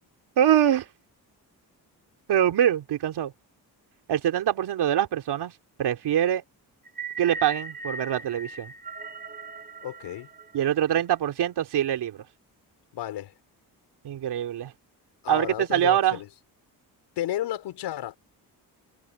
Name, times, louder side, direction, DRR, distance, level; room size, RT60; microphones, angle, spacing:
voice 1, 0.4-0.9 2.3-3.3 4.1-5.5 5.8-6.4 7.2-8.7 10.5-12.2 14.0-14.7 15.3-16.2, right 11 dB, 75° right, 3.4 m, -24 dB
sound 1, 6.8-11.2, right 3 dB, 20° right, 1.3 m, -39 dB
voice 2, 9.8-10.3 12.9-13.3 15.2-16.3 17.2-18.2, left 12 dB, 90° left, 4.1 m, -32 dB
cardioid pair, 90°, 40 cm